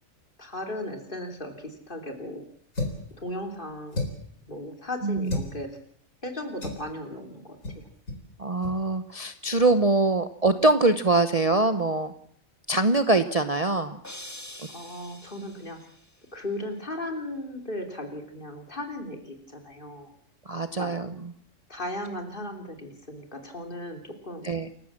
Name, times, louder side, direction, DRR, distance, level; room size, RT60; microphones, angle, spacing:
voice 1, 0.4-2.4 3.2-4.1 4.5-5.7 6.2-7.8 14.7-15.8 16.3-20.1 20.8-21.0 21.7-24.5, left 1 dB, 40° left, 4 dB, 3.5 m, -36 dB
sound 1, 2.7-3.1 3.9-4.3 5.3-5.5 6.6-6.9 7.6-7.8 8.1-8.2 8.6-8.8, left 2 dB, 75° left, 4.4 m, -32 dB
voice 2, 5.0-5.4 8.4-12.1 12.7-14.0 20.5-21.3 24.4-24.7, right 2 dB, 30° right, 8 dB, 0.9 m, -23 dB
sound 2, 14.0-16.1, left 1 dB, 10° left, 1.9 m, -44 dB
28.5 x 15.0 x 7.5 m, 0.63 s
omnidirectional pair, 1.4 m